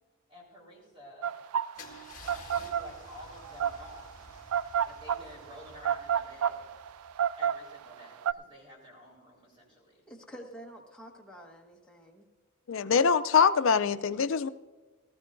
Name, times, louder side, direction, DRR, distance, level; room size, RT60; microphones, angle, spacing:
voice 1, 0.3-1.3 2.2-4.3 4.9-6.7 7.4-10.0, left 1 dB, 25° right, 4.0 m, -51 dB
sound 1, 1.2-8.3, right 8 dB, 85° right, 0.4 m, -30 dB
Car / Engine starting / Idling, 1.7-7.6, left 3 dB, 35° left, 1.6 m, -52 dB
voice 2, 10.1-12.3, equal, 5° left, 1.3 m, -48 dB
voice 3, 12.7-14.5, left 6 dB, 65° left, 0.4 m, -24 dB
18.0 x 14.5 x 2.6 m
head